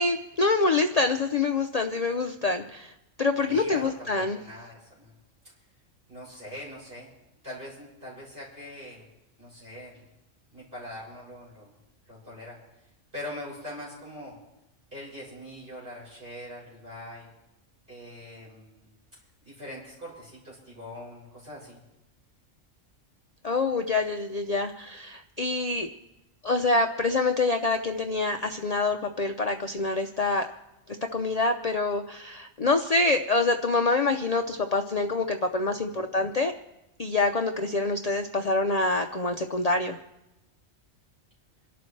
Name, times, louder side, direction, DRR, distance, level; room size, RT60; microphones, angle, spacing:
voice 1, 0.0-2.9 3.2-4.4 23.4-25.9 26.4-30.5 31.1-36.5 37.0-40.0, left 3 dB, 40° left, 4 dB, 0.6 m, -26 dB
voice 2, 3.3-5.2 5.4-5.5 6.1-7.1 7.4-9.1 9.4-10.1 10.5-11.7 12.1-12.6 13.1-14.4 14.9-17.3 17.9-18.9 19.4-21.8 35.9-36.0, left 1 dB, 45° right, -6 dB, 7.2 m, -42 dB
28.0 x 12.0 x 3.3 m, 0.95 s
omnidirectional pair, 1.3 m